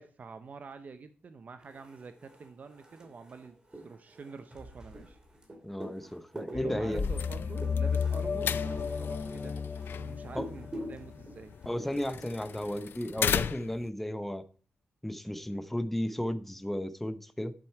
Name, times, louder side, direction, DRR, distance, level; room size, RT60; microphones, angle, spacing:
voice 1, 0.0-5.2 6.5-11.6, right 4 dB, 50° right, 0.7 m, -47 dB
sound 1, 1.6-12.8, right 1 dB, 20° right, 2.8 m, -48 dB
voice 2, 5.6-7.0 10.3-10.5 11.7-14.4 15.0-17.5, left 1 dB, 5° left, 0.7 m, -34 dB
sound 2, 6.5-11.2, left 6 dB, 40° left, 0.7 m, -33 dB
sound 3, 6.9-13.9, left 8 dB, 80° left, 0.4 m, -37 dB
10.5 x 7.7 x 4.6 m
wide cardioid pair, 115°, 4 cm